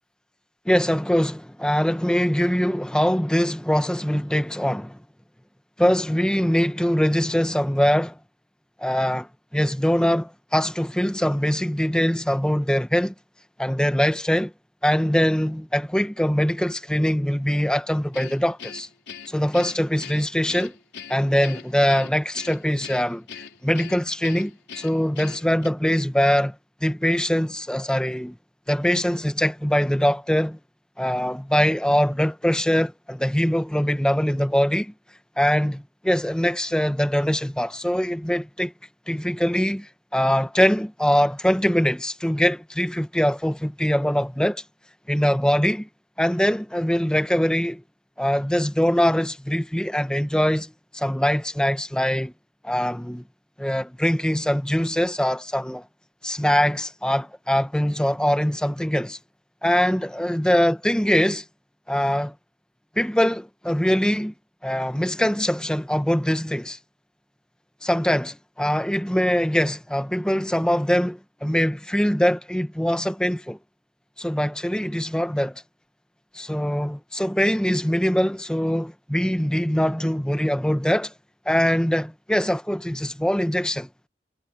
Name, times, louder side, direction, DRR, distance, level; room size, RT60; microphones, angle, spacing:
voice 1, 0.6-5.0 5.8-8.2 8.8-13.1 13.6-14.5 14.8-18.9 19.3-20.7 21.1-26.6 26.8-28.4 28.7-30.6 31.0-34.9 35.4-38.7 39.1-44.6 45.1-45.9 46.2-47.8 48.2-52.3 52.6-53.2 53.6-55.9 56.2-59.2 59.6-61.4 61.9-62.3 63.0-64.3 64.6-66.8 67.8-73.6 74.2-75.6 76.3-81.1 81.5-83.9, equal, 5° left, 0.9 m, -23 dB
Guitar, 18.1-25.7, left 7 dB, 75° left, 4.6 m, -41 dB
head